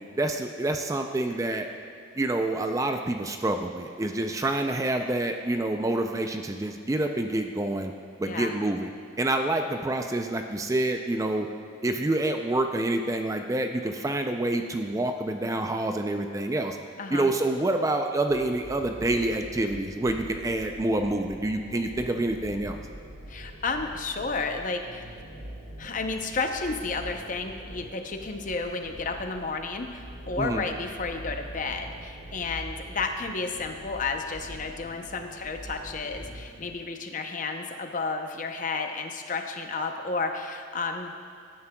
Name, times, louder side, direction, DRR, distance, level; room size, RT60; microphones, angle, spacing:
voice 1, 0.0-1.7 2.2-7.9 8.2-8.9 9.2-11.5 11.8-16.8 17.1-22.8 30.4-30.6, right 2 dB, 15° right, 5 dB, 0.4 m, -27 dB
voice 2, 17.0-17.3 23.3-25.0 25.8-41.3, left 4 dB, 40° left, 5 dB, 0.6 m, -32 dB
sound 1, 18.3-36.7, right 1 dB, 85° right, 1.8 m, -44 dB
16.5 x 9.6 x 2.3 m, 2.4 s
head